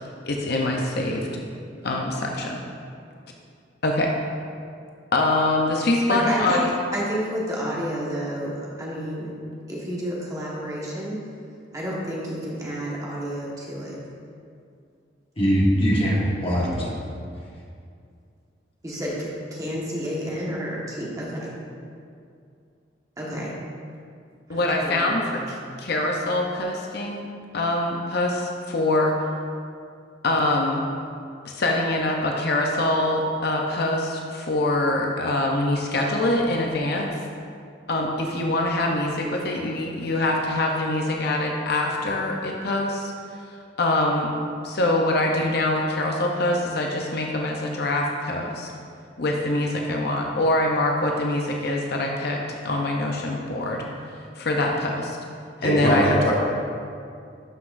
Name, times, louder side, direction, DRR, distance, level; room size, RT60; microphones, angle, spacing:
voice 1, 0.2-1.4 1.8-2.6 3.8-4.1 5.1-6.7 24.5-27.3 27.5-29.2 30.2-30.8 31.5-37.1 37.9-43.1 43.8-44.3 44.6-48.7 49.2-53.9 54.4-55.2 55.6-56.1, left 2 dB, 55° left, 0 dB, 0.7 m, -24 dB
voice 2, 6.1-6.6 6.9-9.3 9.7-11.2 11.7-14.0 18.8-21.5 23.2-23.5 24.5-25.5, equal, 20° right, -5 dB, 1.3 m, -30 dB
voice 3, 15.4-16.9 55.6-56.3, equal, 30° left, -4 dB, 1.4 m, -21 dB
12.0 x 5.8 x 2.6 m, 2.3 s
head